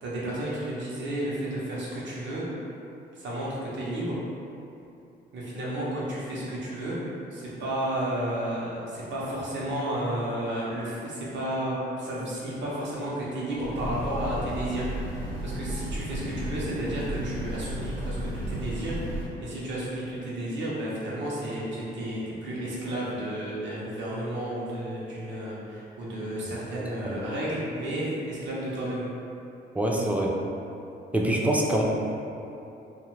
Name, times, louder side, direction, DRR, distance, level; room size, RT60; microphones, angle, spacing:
voice 1, 0.0-2.5 3.2-4.2 5.3-7.0 7.3-29.0, right 1 dB, 65° right, -7 dB, 0.9 m, -32 dB
Train, 13.5-19.3, right 1 dB, 85° right, 1.1 m, -34 dB
voice 2, 26.8-27.2 29.8-30.3 31.1-31.8, right 1 dB, 5° right, -2 dB, 0.4 m, -25 dB
2.5 x 2.5 x 3.1 m, 2.7 s
cardioid pair, 90°, 20 cm